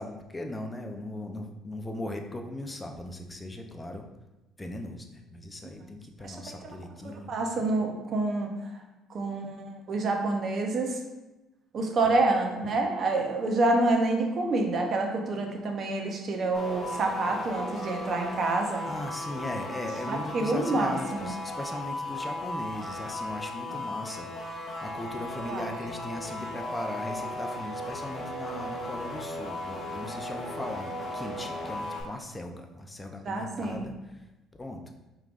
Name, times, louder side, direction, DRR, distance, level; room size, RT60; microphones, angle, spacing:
voice 1, 0.0-4.1 4.6-7.3 18.9-34.3 34.5-34.8, left 1 dB, 20° left, 4 dB, 0.5 m, -38 dB
voice 2, 7.0-8.5 9.1-11.0 11.7-18.8 20.1-21.3 25.3-25.7 33.3-33.9, right 2 dB, 50° right, 3 dB, 0.7 m, -28 dB
sound 1, 16.5-32.0, left 1 dB, 40° left, 1.3 m, -36 dB
5.0 x 3.1 x 2.4 m, 1.0 s
supercardioid pair, 80°, 0 cm